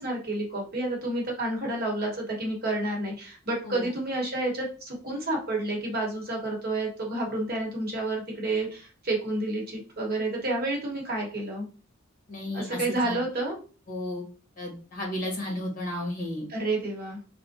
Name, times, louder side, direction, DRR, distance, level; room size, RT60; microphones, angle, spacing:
voice 1, 0.0-11.7 12.5-13.6 16.5-17.2, right 2 dB, 50° right, 0 dB, 1.0 m, -30 dB
voice 2, 12.3-13.2 13.9-14.2 14.6-16.5, left 1 dB, 45° left, -1 dB, 1.2 m, -33 dB
3.4 x 2.1 x 2.6 m, 0.36 s
head